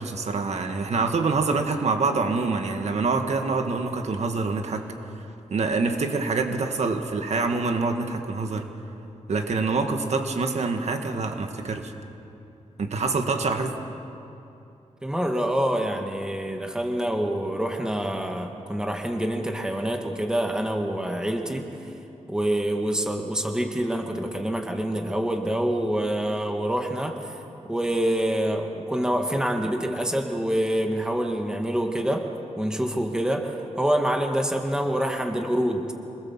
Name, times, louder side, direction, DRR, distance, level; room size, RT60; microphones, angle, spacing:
voice 1, 0.0-4.9 5.2-8.7 9.3-11.9 12.8-13.7, right 4 dB, 65° right, 5 dB, 1.8 m, -26 dB
voice 2, 15.0-21.7 22.3-27.4 27.7-32.3 32.6-35.9, right 1 dB, 5° right, 3 dB, 1.9 m, -26 dB
26.5 x 20.5 x 7.4 m, 2.8 s
wide cardioid pair, 130°, 12 cm